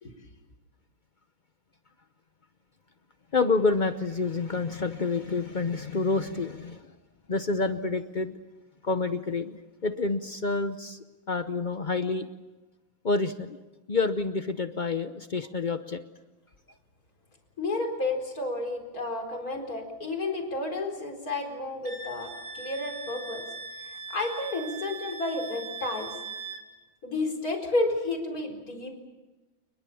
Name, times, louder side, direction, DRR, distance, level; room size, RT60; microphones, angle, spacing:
voice 1, 3.3-6.9 7.3-8.3 8.8-11.0 11.3-12.3 13.0-13.6 13.9-16.0, left 3 dB, 90° left, 9 dB, 0.4 m, -28 dB
voice 2, 17.6-23.4 23.8-26.1 27.0-29.0, left 2 dB, 45° left, 2 dB, 4.7 m, -31 dB
Wind instrument woodwind instrument, 21.8-26.6, right 3 dB, 50° right, 3.0 m, -40 dB
29.5 x 21.5 x 7.1 m, 1.2 s
omnidirectional pair, 2.2 m